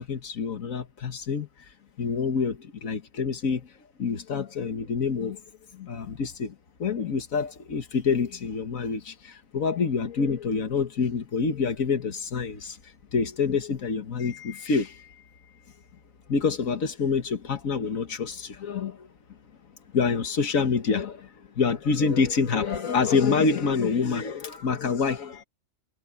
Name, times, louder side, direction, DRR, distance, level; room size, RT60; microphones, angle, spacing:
voice 1, 0.0-1.5 2.0-3.7 4.0-5.4 5.7-12.8 13.1-15.1 16.3-19.1 19.9-21.3 21.6-25.4, left 5 dB, 85° left, 1.9 m, -27 dB
omnidirectional pair, 1.4 m